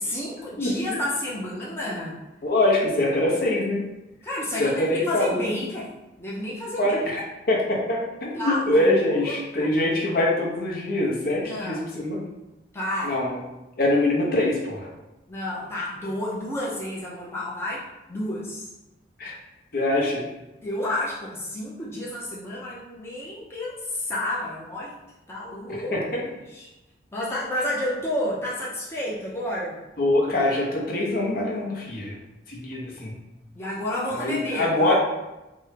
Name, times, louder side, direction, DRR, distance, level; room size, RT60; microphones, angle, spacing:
voice 1, 0.0-2.1 4.2-5.9 6.2-7.0 8.3-9.7 11.4-11.9 12.7-13.2 15.3-17.8 18.1-18.7 20.6-24.9 25.3-26.0 26.5-26.7 27.1-29.8 33.6-34.9, left 1 dB, 15° left, -6 dB, 0.5 m, -30 dB
voice 2, 0.6-1.0 2.4-3.9 4.6-5.6 6.8-12.2 13.0-13.4 13.8-14.9 19.2-19.3 19.7-20.2 25.9-26.2 30.0-32.2 32.5-33.1 34.1-34.9, left 1 dB, 55° left, -2 dB, 0.7 m, -24 dB
3.5 x 2.1 x 3.1 m, 0.99 s
head